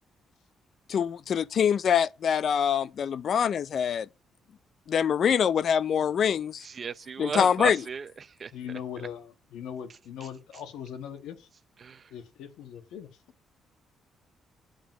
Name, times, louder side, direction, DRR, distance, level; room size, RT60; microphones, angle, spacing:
voice 1, 0.9-4.1 4.9-6.6 7.2-7.8, left 8 dB, 55° left, 0.5 m, -24 dB
voice 2, 6.6-8.5 11.8-12.0, right 5 dB, 45° right, 0.6 m, -35 dB
voice 3, 8.5-11.5 12.1-13.1, left 8 dB, 90° left, 1.7 m, -40 dB
8.9 x 7.3 x 5.9 m
cardioid pair, 90°, 0 cm